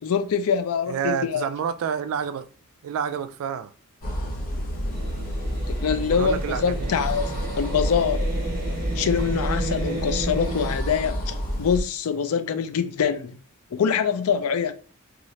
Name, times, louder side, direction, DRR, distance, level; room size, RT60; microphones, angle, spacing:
voice 1, 0.0-1.4 5.8-7.3 7.6-8.3 9.0-13.4 13.7-14.7, left 7 dB, 70° left, 0.4 m, -24 dB
voice 2, 0.9-2.5 2.8-3.7 6.1-7.0, right 7 dB, 65° right, 0.3 m, -29 dB
sound 1, 4.0-11.8, equal, 40° left, 0.7 m, -29 dB
sound 2, 4.9-10.8, right 2 dB, 45° right, 0.8 m, -33 dB
2.7 x 2.4 x 3.1 m
head